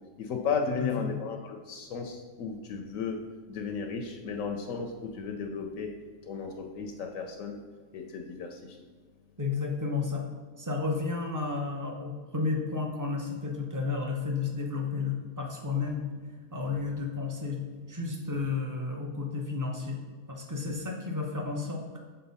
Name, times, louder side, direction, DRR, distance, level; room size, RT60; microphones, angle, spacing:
voice 1, 0.2-3.2 3.5-5.9 6.2-7.6 7.9-8.8, left 5 dB, 70° left, 4 dB, 0.9 m, -34 dB
voice 2, 0.8-1.1 9.4-10.2 10.6-16.0 16.5-17.6 17.9-20.0 20.3-22.0, left 4 dB, 20° right, 0 dB, 0.6 m, -32 dB
6.7 x 4.1 x 4.1 m, 1.5 s
omnidirectional pair, 1.5 m